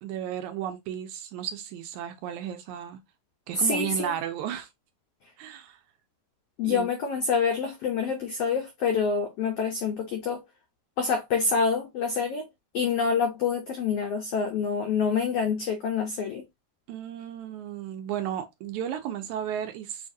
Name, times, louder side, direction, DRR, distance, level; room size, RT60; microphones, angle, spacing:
voice 1, 0.0-3.0 3.5-4.7 5.4-5.8 6.6-6.9 16.9-20.1, right 10 dB, 80° right, 1.9 m, -34 dB
voice 2, 3.5-4.1 6.6-10.4 11.0-12.5 12.7-16.4, left 5 dB, 90° left, 1.3 m, -27 dB
6.3 x 2.5 x 2.5 m
omnidirectional pair, 3.7 m